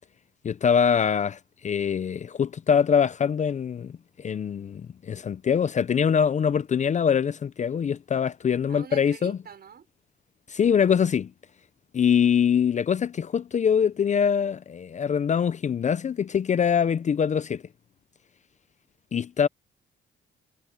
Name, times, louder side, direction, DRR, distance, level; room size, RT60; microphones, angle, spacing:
voice 1, 0.4-9.4 10.5-11.3 11.9-17.6 19.1-19.5, left 7 dB, 35° left, 0.5 m, -23 dB
voice 2, 8.7-9.9, right 8 dB, 55° right, 6.0 m, -44 dB
cardioid pair, 90°, 20 cm